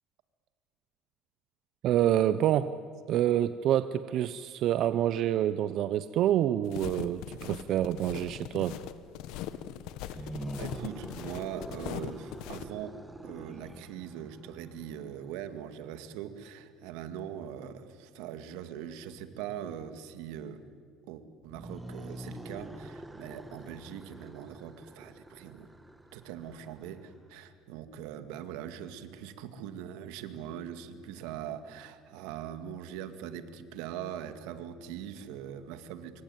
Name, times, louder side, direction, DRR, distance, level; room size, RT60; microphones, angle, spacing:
voice 1, 1.8-2.8 3.1-8.8, right 11 dB, 55° right, 13 dB, 0.8 m, -27 dB
sound 1, 6.6-12.6, left 12 dB, 75° left, 1.2 m, -40 dB
sound 2, 10.0-15.2 21.4-27.1, right 1 dB, 10° right, 1.3 m, -45 dB
voice 2, 10.1-20.6 21.1-25.7 26.1-36.2, right 9 dB, 85° right, 10 dB, 2.0 m, -42 dB
25.5 x 24.5 x 9.2 m, 2.1 s
cardioid pair, 130°, 0 cm